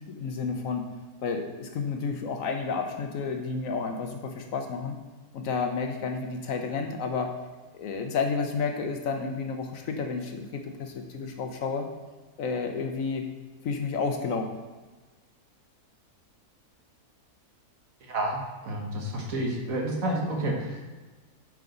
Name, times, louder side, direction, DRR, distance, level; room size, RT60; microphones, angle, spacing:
voice 1, 0.1-0.8 1.2-5.0 5.3-7.3 7.7-11.9 12.4-13.3 13.6-14.5, left 5 dB, 65° left, 4 dB, 1.1 m, -31 dB
voice 2, 18.0-20.8, right 1 dB, 65° right, 0 dB, 1.6 m, -30 dB
9.2 x 4.9 x 3.9 m, 1.3 s
omnidirectional pair, 1.6 m